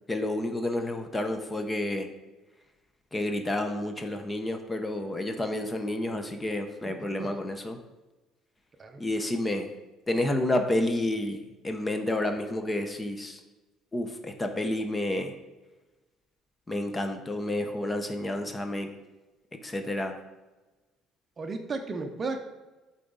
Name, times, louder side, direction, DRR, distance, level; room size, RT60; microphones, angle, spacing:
voice 1, 0.1-2.1 3.1-7.8 9.0-9.7 10.1-13.4 13.9-15.3 16.7-18.9 19.6-20.1, left 1 dB, 15° left, 6 dB, 0.6 m, -30 dB
voice 2, 21.4-22.4, right 3 dB, 30° right, 6 dB, 0.6 m, -34 dB
8.2 x 4.0 x 4.0 m, 1.1 s
cardioid pair, 130°, 0 cm